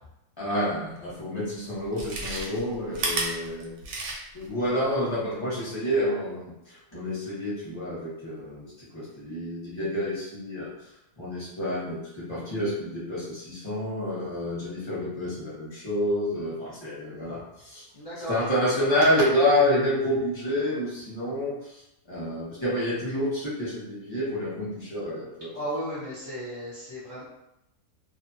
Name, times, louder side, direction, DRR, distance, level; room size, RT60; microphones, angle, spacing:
voice 1, 0.4-3.8 4.3-10.7 11.2-17.8 18.3-21.8 22.1-25.5, left 1 dB, 20° left, -8 dB, 0.9 m, -28 dB
Chewing mastication, 1.1-1.2 1.8-4.5 4.8-4.9, right 2 dB, 85° right, 1.2 m, -32 dB
voice 2, 17.9-18.3 25.5-27.2, equal, 40° left, -9 dB, 0.5 m, -35 dB
2.7 x 2.4 x 2.7 m, 0.86 s
omnidirectional pair, 1.6 m